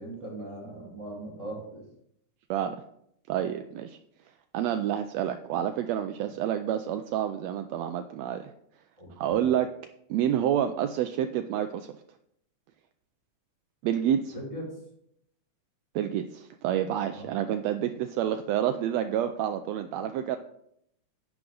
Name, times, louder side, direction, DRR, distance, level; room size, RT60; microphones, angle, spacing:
voice 1, 0.0-1.8 6.3-6.4 9.0-9.4 14.3-14.7 17.1-17.5, right 1 dB, 10° left, -4 dB, 4.9 m, -40 dB
voice 2, 3.3-4.0 4.5-8.5 9.2-9.7 10.1-11.9 13.8-14.3 15.9-20.4, right 10 dB, 85° right, 8 dB, 1.5 m, -28 dB
11.0 x 8.4 x 3.8 m, 0.73 s
omnidirectional pair, 3.6 m